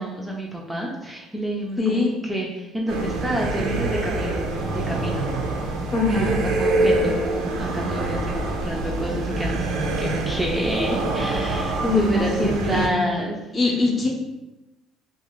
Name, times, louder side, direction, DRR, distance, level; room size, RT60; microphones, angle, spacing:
voice 1, 0.0-5.3 6.1-6.3 6.6-13.4, equal, 10° right, -2 dB, 0.4 m, -29 dB
voice 2, 1.8-2.1 5.9-6.3 11.8-13.0 13.5-14.1, left 3 dB, 30° left, -1 dB, 0.7 m, -22 dB
sound 1, 2.9-12.9, right 2 dB, 85° right, 0.5 m, -25 dB
2.5 x 2.3 x 3.0 m, 0.97 s
cardioid pair, 115°, 0 cm